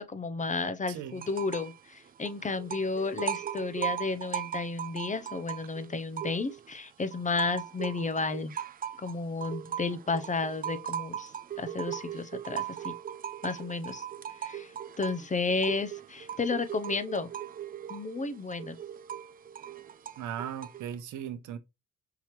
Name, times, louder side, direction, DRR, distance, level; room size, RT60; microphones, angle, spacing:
voice 1, 0.0-8.5 9.0-11.3 11.6-12.9 13.4-14.0 14.4-17.3 17.9-18.7, left 3 dB, 25° left, 0.7 m, -32 dB
voice 2, 0.9-1.3 20.2-21.6, right 9 dB, 65° right, 0.8 m, -38 dB
sound 1, 1.2-1.8 2.1-6.7 7.1-20.9, right 10 dB, 30° right, 0.4 m, -39 dB
5.8 x 2.8 x 3.0 m
supercardioid pair, 70°, 32 cm